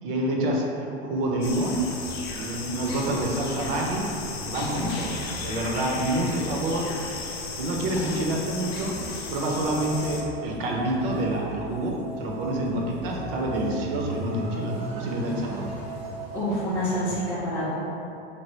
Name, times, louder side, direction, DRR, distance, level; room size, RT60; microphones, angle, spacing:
voice 1, 0.0-1.8 2.4-4.1 4.4-6.9 7.5-9.0 9.3-15.7, right 1 dB, 60° right, -1 dB, 0.6 m, -27 dB
sound 1, 1.2-17.2, equal, 80° right, 1.1 m, -39 dB
sound 2, 1.4-10.2, left 4 dB, 80° left, 0.6 m, -36 dB
sound 3, 9.5-16.4, right 5 dB, 40° left, 0.7 m, -40 dB
voice 2, 16.3-17.7, equal, 10° left, -10 dB, 0.4 m, -27 dB
3.3 x 2.3 x 2.9 m, 2.7 s
supercardioid pair, 130°, 32 cm